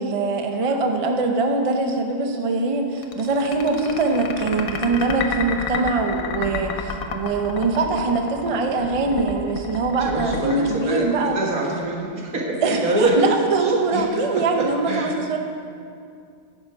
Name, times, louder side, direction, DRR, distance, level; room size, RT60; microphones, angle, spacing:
voice 1, 0.0-11.4 12.6-15.4, right 3 dB, 35° right, 4 dB, 0.6 m, -23 dB
sound 1, 3.0-11.6, left 6 dB, 85° left, 1.1 m, -31 dB
sound 2, 3.7-10.7, right 3 dB, 15° left, 2.7 m, -45 dB
voice 2, 10.0-13.1 13.6-15.1, right 2 dB, 90° right, -2 dB, 1.9 m, -25 dB
10.0 x 6.6 x 4.8 m, 2.3 s
omnidirectional pair, 1.5 m